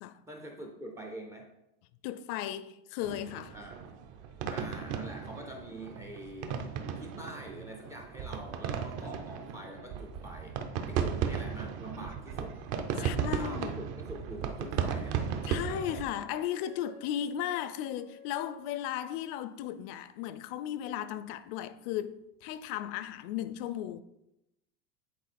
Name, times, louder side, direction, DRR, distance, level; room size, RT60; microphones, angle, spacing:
voice 1, 0.3-1.5 3.5-3.8 4.5-6.6 7.0-10.6 10.9-12.6 13.0-15.3, right 1 dB, 10° right, 0.3 m, -45 dB
voice 2, 2.0-3.6 9.0-9.1 13.0-13.8 15.4-24.0, left 11 dB, 55° left, 0.5 m, -36 dB
sound 1, 3.0-16.1, right 7 dB, 45° right, 0.7 m, -35 dB
sound 2, 15.0-19.5, equal, 75° right, 2.5 m, -55 dB
9.3 x 4.2 x 4.2 m
cardioid pair, 180°, 35 cm